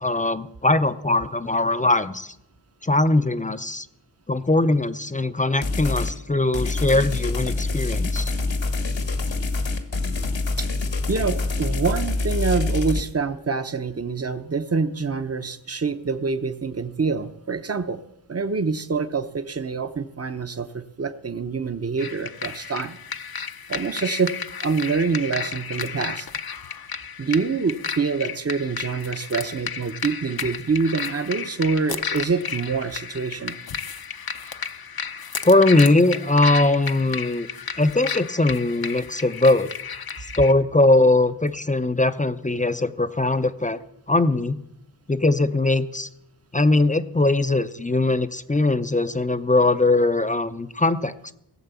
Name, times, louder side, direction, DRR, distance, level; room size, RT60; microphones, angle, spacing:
voice 1, 0.0-2.3 2.8-3.9 4.3-8.3 35.4-37.5 37.8-39.7 40.4-43.8 44.1-44.6 45.1-46.1 46.5-51.3, left 2 dB, 15° left, 11 dB, 0.6 m, -20 dB
sound 1, 5.6-6.1 6.5-13.0, left 3 dB, 75° left, 1.7 m, -25 dB
voice 2, 11.1-18.0 18.3-23.0 23.7-24.3 24.6-26.3 27.2-33.6, right 4 dB, 35° right, 10 dB, 0.8 m, -26 dB
sound 2, 22.0-40.5, left 6 dB, 55° left, 0.7 m, -33 dB
18.0 x 8.0 x 6.9 m, 0.81 s
wide cardioid pair, 100°, 45 cm